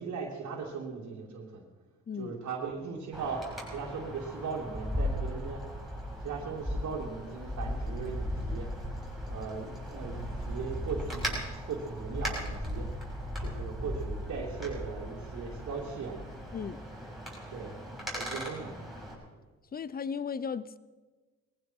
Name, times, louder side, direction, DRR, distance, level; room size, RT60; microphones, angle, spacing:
voice 1, 0.0-1.6 2.2-5.6 6.2-8.7 9.3-12.9 13.4-16.2 17.5-17.7 18.1-18.8, right 5 dB, 70° right, -6 dB, 2.8 m, -38 dB
voice 2, 2.1-2.4 16.5-16.8 19.7-20.8, left 6 dB, 30° left, 17 dB, 0.7 m, -36 dB
Wind, 3.1-19.1, equal, ahead, 6.5 m, -37 dB
19.5 x 15.5 x 4.5 m, 1.3 s
cardioid pair, 90°, 30 cm